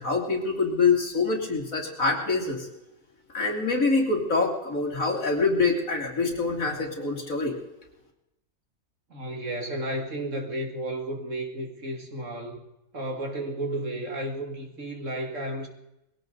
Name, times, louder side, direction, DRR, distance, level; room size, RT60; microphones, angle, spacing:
voice 1, 0.0-2.7 3.3-7.5, left 4 dB, 65° left, 0 dB, 3.3 m, -25 dB
voice 2, 9.1-12.6 12.9-15.7, right 1 dB, 55° right, 2 dB, 2.7 m, -33 dB
21.5 x 17.0 x 4.0 m, 0.89 s
omnidirectional pair, 1.5 m